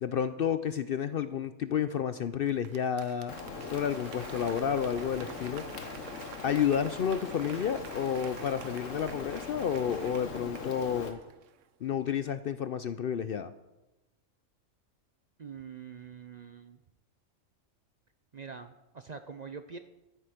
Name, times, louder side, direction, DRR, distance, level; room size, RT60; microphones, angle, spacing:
voice 1, 0.0-3.3 3.7-5.6 6.4-11.2 11.8-13.5, left 8 dB, 60° left, 12 dB, 0.6 m, -31 dB
Applause / Crowd, 2.5-11.9 12.3-12.4, right 9 dB, 75° right, 1.0 m, -49 dB
Rain, 3.3-11.1, left 4 dB, 75° left, 1.6 m, -41 dB
voice 2, 15.4-16.8 18.3-19.8, right 6 dB, 45° right, 9 dB, 0.6 m, -44 dB
13.5 x 10.5 x 5.0 m, 1.0 s
omnidirectional pair, 1.3 m